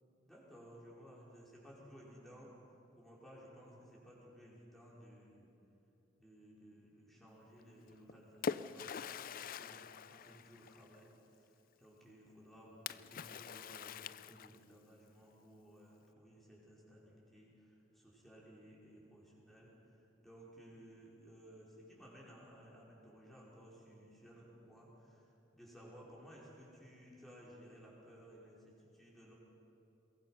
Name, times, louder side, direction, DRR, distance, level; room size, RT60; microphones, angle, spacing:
voice 1, 0.2-2.5 2.9-5.5 6.2-29.3, equal, ahead, -6 dB, 5.0 m, -58 dB
Splash splatter, 7.9-11.1 12.9-14.8, left 6 dB, 45° left, 0.4 m, -44 dB
22.0 x 22.0 x 5.9 m, 2.9 s
head